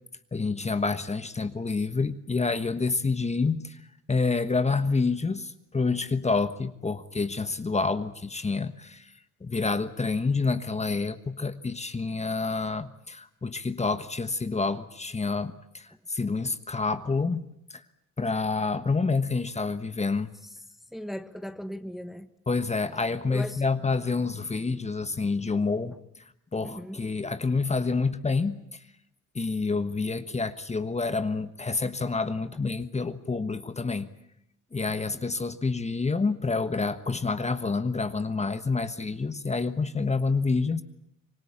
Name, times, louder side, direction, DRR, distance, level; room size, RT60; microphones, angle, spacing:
voice 1, 0.3-3.8 4.1-9.1 9.4-17.4 17.7-17.8 18.2-20.3 22.5-25.9 26.5-28.7 29.3-34.1 34.7-40.8, left 4 dB, 20° left, 11 dB, 1.3 m, -28 dB
voice 2, 20.9-22.3 23.3-23.6 26.6-27.0, equal, ahead, 10 dB, 1.3 m, -37 dB
25.5 x 20.0 x 8.7 m, 0.78 s
cardioid pair, 90°, 30 cm